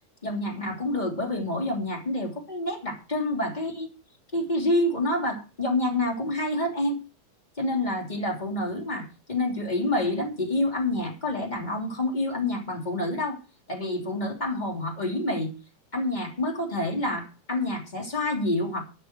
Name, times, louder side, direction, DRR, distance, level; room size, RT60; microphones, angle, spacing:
voice 1, 0.2-3.9 4.3-7.0 7.6-13.4 13.7-15.5 15.9-18.8, left 1 dB, 15° left, 3.0 m, -28 dB
12.5 x 11.0 x 4.5 m
omnidirectional pair, 3.4 m